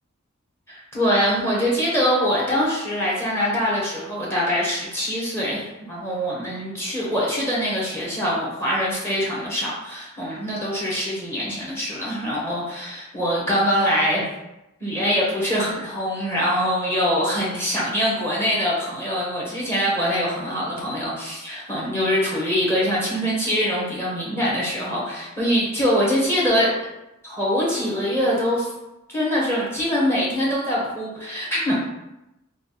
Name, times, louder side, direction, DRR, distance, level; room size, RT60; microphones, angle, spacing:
voice 1, 0.7-14.3 14.8-26.7 27.2-28.7 29.1-31.7, equal, 10° left, -6 dB, 1.1 m, -23 dB
3.4 x 2.3 x 4.0 m, 0.93 s
head